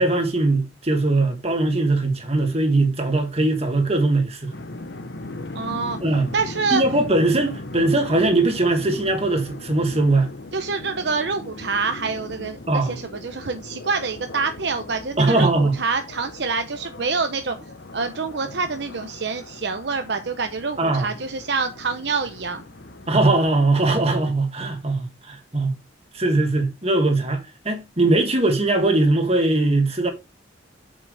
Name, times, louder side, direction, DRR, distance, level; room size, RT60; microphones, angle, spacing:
voice 1, 0.0-4.5 6.0-6.3 6.7-10.3 12.7-13.0 15.2-15.8 20.8-21.1 23.1-25.8 26.1-30.1, right 2 dB, 35° right, 2.0 m, -20 dB
sound 1, 4.5-23.7, left 2 dB, 65° left, 1.0 m, -38 dB
voice 2, 5.5-6.0 6.3-6.8 10.5-17.6 17.9-22.6, right 4 dB, 60° right, 0.7 m, -26 dB
7.8 x 7.5 x 3.4 m
head